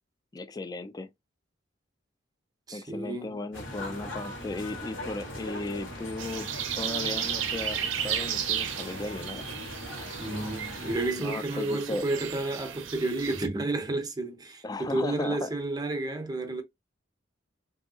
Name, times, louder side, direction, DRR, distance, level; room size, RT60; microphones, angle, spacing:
voice 1, 0.3-1.1 2.7-6.5 6.8-7.8 8.0-9.5 11.2-12.0 14.6-15.5, left 2 dB, 20° left, 0.3 m, -36 dB
voice 2, 2.7-3.4 10.2-16.6, right 2 dB, 20° right, 0.6 m, -31 dB
sound 1, 3.5-11.1, left 1 dB, 75° left, 1.3 m, -40 dB
sound 2, 6.2-13.5, right 9 dB, 70° right, 0.5 m, -34 dB
3.3 x 2.7 x 2.7 m
head